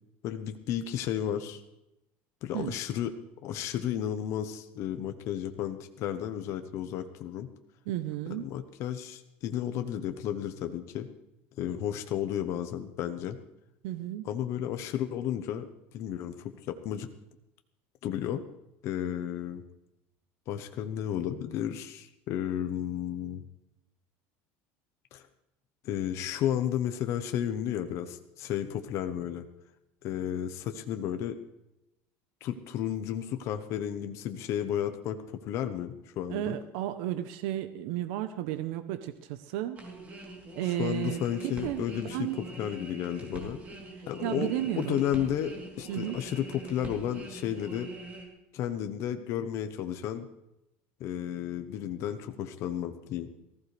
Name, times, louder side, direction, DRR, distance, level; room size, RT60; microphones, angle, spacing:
voice 1, 0.2-1.6 2.4-3.1 3.4-7.5 8.3-11.1 11.6-13.4 14.2-15.7 15.9-17.1 18.0-18.4 18.8-19.6 20.5-23.4 25.1-25.2 25.8-29.5 30.0-31.4 32.4-36.5 40.6-43.6 44.1-47.9 48.5-50.3 51.0-53.3, left 10 dB, 50° left, 7 dB, 1.0 m, -33 dB
voice 2, 7.9-8.5 13.8-14.3 36.3-39.8 40.5-42.4 44.2-45.0 45.9-46.2, right 13 dB, 75° right, 10 dB, 0.8 m, -33 dB
sound 1, 39.8-48.2, right 2 dB, 25° right, 3.2 m, -43 dB
19.0 x 15.0 x 3.3 m, 0.88 s
cardioid pair, 155°, 6 cm